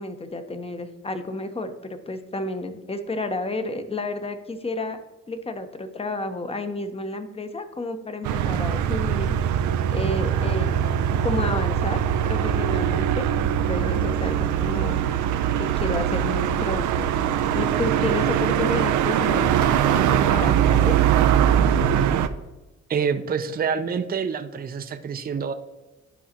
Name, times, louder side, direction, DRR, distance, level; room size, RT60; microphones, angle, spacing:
voice 1, 0.0-5.0 5.3-9.4 9.9-12.0 12.3-13.3 13.7-15.1 15.6-17.1 17.5-21.0, left 2 dB, 20° left, 9 dB, 0.8 m, -31 dB
sound 1, 8.2-22.3, right 9 dB, 80° right, 0.5 m, -22 dB
voice 2, 22.9-25.5, right 6 dB, 30° right, 8 dB, 0.6 m, -27 dB
11.5 x 4.8 x 2.9 m, 1.1 s
cardioid pair, 90°, 30 cm